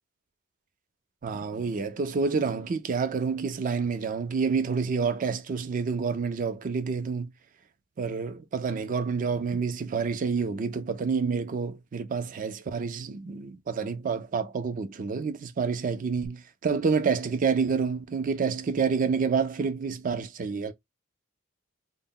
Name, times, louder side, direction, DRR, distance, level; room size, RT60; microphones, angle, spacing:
voice 1, 1.2-7.3 8.0-20.7, right 5 dB, 40° right, 0.4 m, -28 dB
2.1 x 2.0 x 3.6 m
head